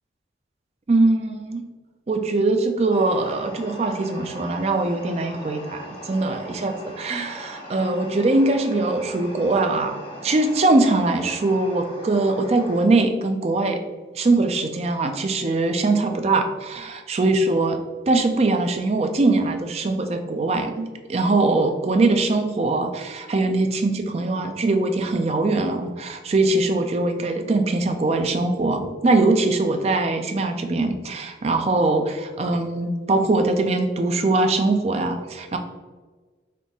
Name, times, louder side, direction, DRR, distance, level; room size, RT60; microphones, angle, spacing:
voice 1, 0.9-1.6 2.1-13.8 14.1-17.8 18.1-35.6, right 2 dB, 35° right, 5 dB, 0.3 m, -22 dB
sound 1, 2.9-12.8, equal, 25° left, 0.6 m, -40 dB
4.0 x 2.5 x 3.5 m, 1.3 s
head